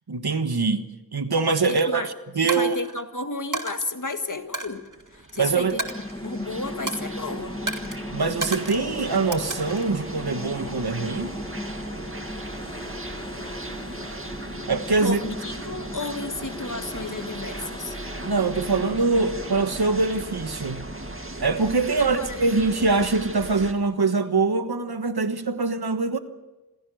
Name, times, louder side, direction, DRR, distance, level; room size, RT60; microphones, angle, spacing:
voice 1, 0.1-2.0 2.3-2.8 5.4-5.8 8.1-11.4 14.7-15.2 18.2-20.9 21.4-26.2, right 4 dB, 90° right, 1.4 m, -23 dB
Coin (dropping), 1.6-1.8 2.5-3.0 3.5-3.7 4.5-5.4 5.8-6.5 6.9-7.2 7.7-8.0 8.4-8.9 9.3-9.9, right 3 dB, 55° right, 1.9 m, -32 dB
voice 2, 1.7-2.1 2.4-4.8 5.1-5.8 6.2-7.5 15.0-18.0 22.0-22.4, left 2 dB, 55° left, 1.8 m, -32 dB
sound 1, 4.6-23.7, right 1 dB, 35° right, 2.0 m, -38 dB
Mechanical fan, 5.3-20.2, left 1 dB, 10° left, 1.2 m, -38 dB
27.0 x 16.5 x 6.4 m
wide cardioid pair, 45°, 37 cm